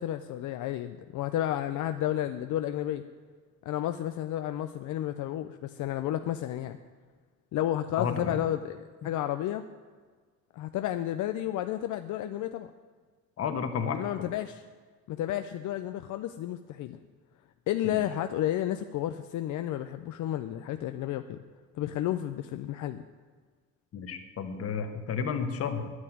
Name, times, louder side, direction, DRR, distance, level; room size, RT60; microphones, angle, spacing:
voice 1, 0.0-3.0 3.6-6.8 7.5-9.6 10.5-12.7 13.9-14.6 15.1-17.0 17.7-21.4 21.7-23.0, left 12 dB, 80° left, 9 dB, 0.6 m, -32 dB
voice 2, 8.0-8.4 13.4-14.3 17.8-18.0 23.9-25.9, left 6 dB, 55° left, 8 dB, 1.5 m, -32 dB
11.0 x 9.6 x 9.4 m, 1.5 s
cardioid pair, 150°, 30 cm